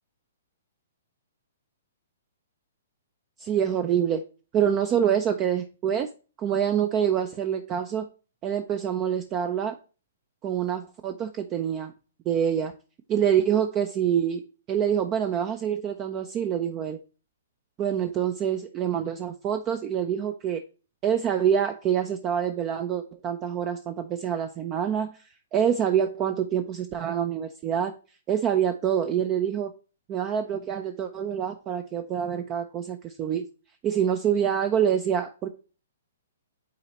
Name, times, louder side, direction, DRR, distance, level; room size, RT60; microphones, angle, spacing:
voice 1, 3.4-4.2 4.5-6.1 6.4-8.1 8.4-9.8 10.4-11.9 12.3-12.7 13.1-14.4 14.7-17.0 17.8-20.6 21.0-25.2 25.5-27.9 28.3-29.7 30.1-33.4 33.8-35.5, right 9 dB, 25° right, 8 dB, 0.5 m, -26 dB
8.7 x 4.0 x 2.9 m, 0.34 s
hypercardioid pair, 145°, 0 cm